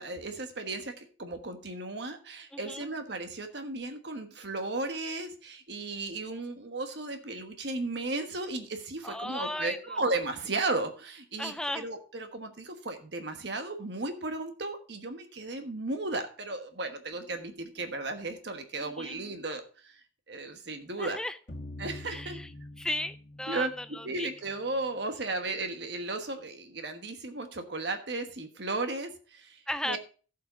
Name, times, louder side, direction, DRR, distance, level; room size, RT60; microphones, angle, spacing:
voice 1, 0.0-20.0 20.3-21.2 21.8-22.4 23.5-23.7 24.0-29.6 29.8-30.0, right 2 dB, 60° right, 7 dB, 1.2 m, -35 dB
voice 2, 2.5-2.8 9.0-9.8 11.4-11.9 18.8-19.1 21.0-21.3 22.1-22.5 22.8-24.3 29.7-30.0, left 1 dB, 5° left, 11 dB, 0.4 m, -35 dB
sound 1, 21.5-24.6, left 1 dB, 60° left, 1.6 m, -45 dB
14.5 x 5.8 x 3.6 m, 0.39 s
head